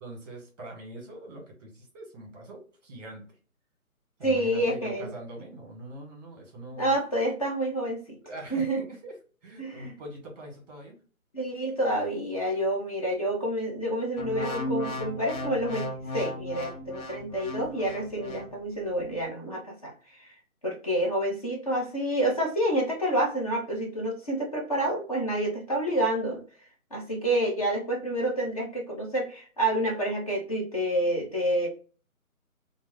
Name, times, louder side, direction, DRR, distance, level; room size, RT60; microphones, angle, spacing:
voice 1, 0.0-3.4 4.2-6.9 8.2-9.2 9.4-11.0, right 1 dB, 30° right, 0 dB, 1.2 m, -43 dB
voice 2, 4.2-5.1 6.8-8.0 8.5-8.8 9.6-9.9 11.3-20.3 20.6-26.4 26.9-31.7, right 1 dB, 25° left, -1 dB, 0.7 m, -28 dB
sound 1, 14.2-18.5 19.0-19.3, equal, 70° left, 0.8 m, -35 dB
2.5 x 2.1 x 3.6 m, 0.38 s
figure-of-eight pair, 150°, 43 cm